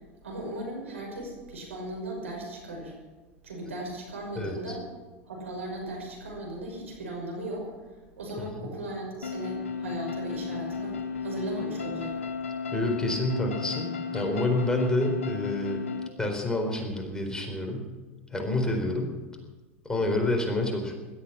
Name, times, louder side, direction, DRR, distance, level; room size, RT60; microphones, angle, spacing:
voice 1, 0.2-2.9 3.4-4.9 5.3-7.7 8.2-12.2, right 1 dB, 85° right, 0 dB, 5.8 m, -37 dB
voice 2, 4.4-4.8 8.5-8.6 12.7-15.8 16.2-17.8 18.3-19.1 19.8-20.9, left 2 dB, 10° left, 2 dB, 4.3 m, -28 dB
sound 1, 9.2-16.1, left 5 dB, 85° left, 1.2 m, -34 dB
17.0 x 13.0 x 6.1 m, 1.2 s
hypercardioid pair, 85°, 7 cm